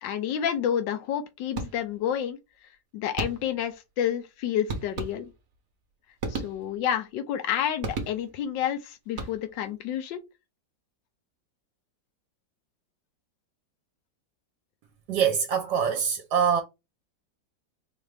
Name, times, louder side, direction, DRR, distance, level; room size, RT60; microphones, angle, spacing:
voice 1, 0.0-2.4 2.9-5.3 6.3-10.2, left 9 dB, 75° left, 1.3 m, -29 dB
sound 1, 1.5-2.1 3.2-3.7 4.7-5.6 6.2-7.0 7.8-8.5 9.1-9.7, right 3 dB, 50° right, 0.9 m, -35 dB
voice 2, 15.1-16.6, right 7 dB, 70° right, 1.2 m, -24 dB
4.4 x 2.5 x 3.3 m
omnidirectional pair, 2.1 m